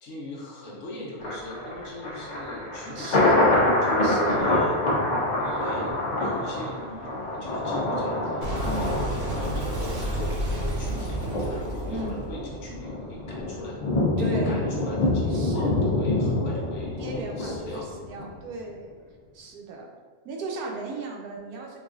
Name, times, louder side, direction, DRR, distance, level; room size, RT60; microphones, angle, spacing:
voice 1, 0.0-3.5 3.8-4.9 5.2-13.8 14.2-17.0 17.4-17.9, left 1 dB, 65° left, -3 dB, 0.9 m, -39 dB
Thunder, 1.2-18.3 18.7-18.8, left 2 dB, 80° left, 0.4 m, -26 dB
voice 2, 2.9-3.6 4.0-4.4 8.6-8.9 11.9-12.2 14.2-14.6 15.3-15.8 17.0-19.0 19.3-19.9 20.2-21.8, right 2 dB, 90° right, 0 dB, 1.1 m, -36 dB
Boom, 8.4-13.6, right 1 dB, 65° right, 1.0 m, -31 dB
3.9 x 2.4 x 2.4 m, 1.5 s
omnidirectional pair, 1.6 m